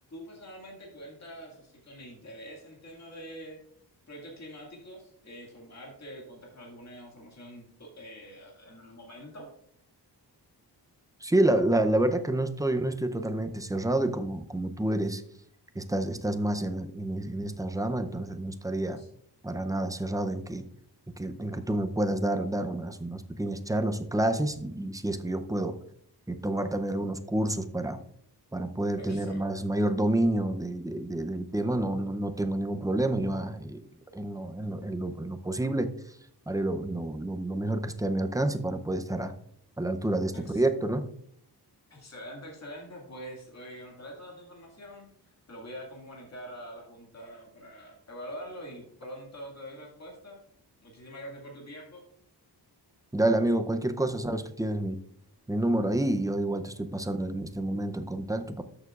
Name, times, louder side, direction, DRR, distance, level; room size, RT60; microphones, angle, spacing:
voice 1, 0.1-3.6 4.1-9.5 19.0-19.1 29.0-29.4 40.3-40.6 41.9-45.1 45.5-50.4 50.8-52.0, equal, 40° left, -2 dB, 2.1 m, -45 dB
voice 2, 11.2-15.2 15.7-19.0 19.4-20.7 21.2-25.8 26.3-28.0 28.5-33.9 34.1-35.9 36.5-39.3 39.8-41.1 53.1-55.0 55.5-58.6, right 1 dB, 10° right, 7 dB, 0.5 m, -29 dB
13.0 x 6.8 x 2.4 m, 0.67 s
wide cardioid pair, 130°, 41 cm